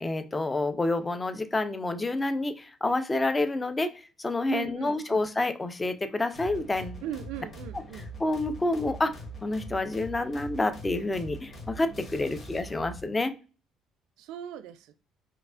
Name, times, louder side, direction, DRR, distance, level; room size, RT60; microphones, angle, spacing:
voice 1, 0.0-3.9 4.2-7.0 8.2-9.1 9.4-13.3, left 2 dB, 15° left, 0.3 m, -28 dB
voice 2, 4.5-5.2 7.0-8.1 11.9-12.0 14.2-14.9, right 10 dB, 85° right, 0.3 m, -39 dB
sound 1, 6.3-13.0, right 1 dB, 35° left, 1.0 m, -43 dB
4.4 x 2.4 x 2.4 m
cardioid pair, 150°, 0 cm